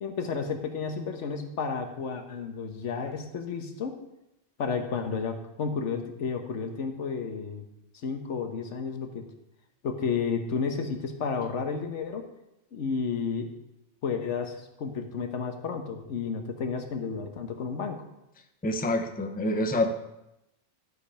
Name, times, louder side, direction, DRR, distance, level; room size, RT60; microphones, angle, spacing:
voice 1, 0.0-4.0 4.6-7.6 8.0-9.2 9.8-12.3 12.7-13.5 14.0-18.0, left 5 dB, 85° left, 6 dB, 1.3 m, -32 dB
voice 2, 18.6-19.9, left 1 dB, 10° left, 6 dB, 0.6 m, -27 dB
11.5 x 5.1 x 5.6 m, 0.89 s
omnidirectional pair, 1.2 m